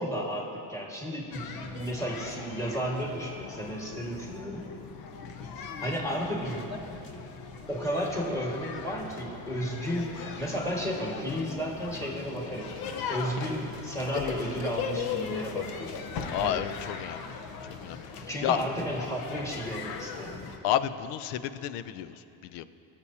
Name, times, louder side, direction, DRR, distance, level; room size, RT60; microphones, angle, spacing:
voice 1, 0.0-4.7 5.8-6.9 7.7-12.8 13.1-15.9 16.4-16.7 18.2-20.4, equal, 5° left, -3 dB, 1.9 m, -33 dB
sound 1, 1.3-20.6, left 6 dB, 60° left, 0.9 m, -39 dB
voice 2, 16.3-17.4 17.8-18.1 18.4-18.6 20.6-22.6, left 11 dB, 75° left, 14 dB, 0.6 m, -31 dB
20.0 x 7.0 x 2.8 m, 2.8 s
cardioid pair, 110°, 41 cm